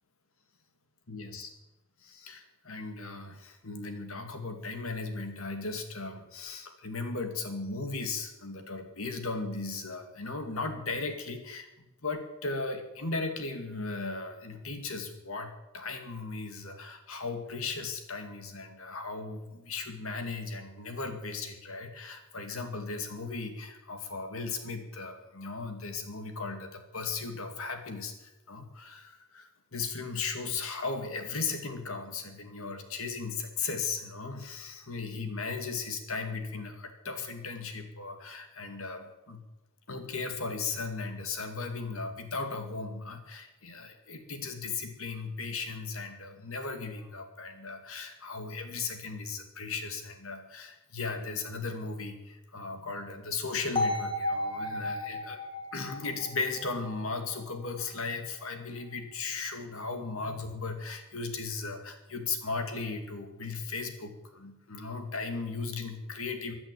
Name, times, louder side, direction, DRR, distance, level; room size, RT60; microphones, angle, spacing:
voice 1, 1.1-1.5 2.0-11.7 12.0-39.4 39.9-55.4 55.7-66.5, left 4 dB, 70° left, 6 dB, 2.4 m, -37 dB
sound 1, 53.8-57.7, left 1 dB, 25° left, 3.5 m, -34 dB
15.5 x 10.5 x 8.5 m, 0.98 s
head